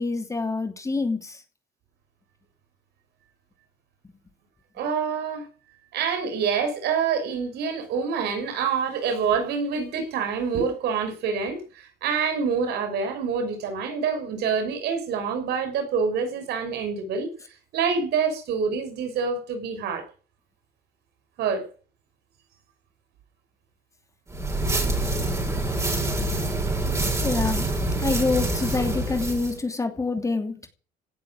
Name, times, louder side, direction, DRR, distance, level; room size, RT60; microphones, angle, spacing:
voice 1, 0.0-1.4 26.2-26.5 27.0-27.7 28.0-30.7, left 3 dB, 20° left, 2.8 m, -27 dB
voice 2, 4.8-5.5 5.9-17.3 17.7-20.0 21.4-21.7, right 6 dB, 75° right, 5.9 m, -26 dB
sound 1, 24.3-29.6, right 2 dB, 15° right, 6.3 m, -26 dB
17.0 x 7.4 x 9.3 m
cardioid pair, 110°, 17 cm